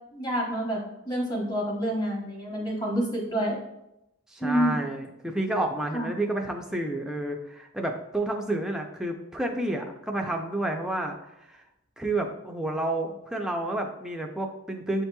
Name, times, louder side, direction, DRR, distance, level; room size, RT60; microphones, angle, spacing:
voice 1, 0.1-0.8 1.1-3.6 4.4-4.7 5.9-6.1, equal, 20° left, -1 dB, 0.9 m, -28 dB
voice 2, 4.3-11.1 11.4-11.6 12.0-15.0, right 1 dB, 5° right, 1 dB, 0.3 m, -30 dB
8.0 x 2.8 x 2.2 m, 0.87 s
head